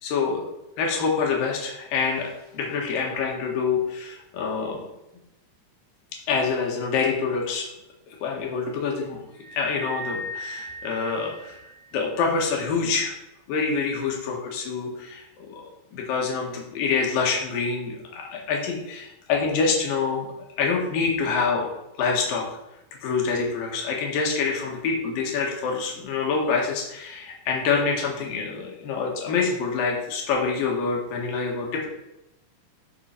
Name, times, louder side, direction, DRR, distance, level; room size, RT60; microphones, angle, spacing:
voice 1, 0.0-0.5 0.8-4.9 6.3-7.7 8.2-9.2 9.5-11.6 11.9-13.1 13.5-15.6 15.9-20.3 20.6-21.7 22.0-22.4 23.0-31.9, left 5 dB, 60° left, -1 dB, 3.2 m, -26 dB
sound 1, 9.4-12.0, equal, 85° right, 4.1 m, -38 dB
12.5 x 4.4 x 6.0 m, 0.90 s
omnidirectional pair, 5.1 m